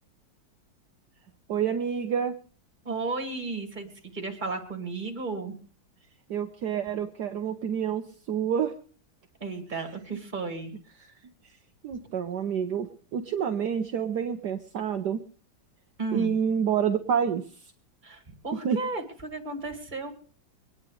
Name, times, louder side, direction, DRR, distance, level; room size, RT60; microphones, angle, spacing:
voice 1, 1.5-2.3 6.3-8.0 8.3-8.7 11.0-11.1 11.8-15.2 16.1-17.4 18.6-18.8, right 7 dB, 65° right, 6 dB, 1.4 m, -28 dB
voice 2, 2.8-5.6 9.4-10.7 16.0-16.4 18.0-20.1, right 3 dB, 25° right, 4 dB, 2.5 m, -34 dB
23.5 x 9.7 x 4.9 m, 0.41 s
omnidirectional pair, 2.1 m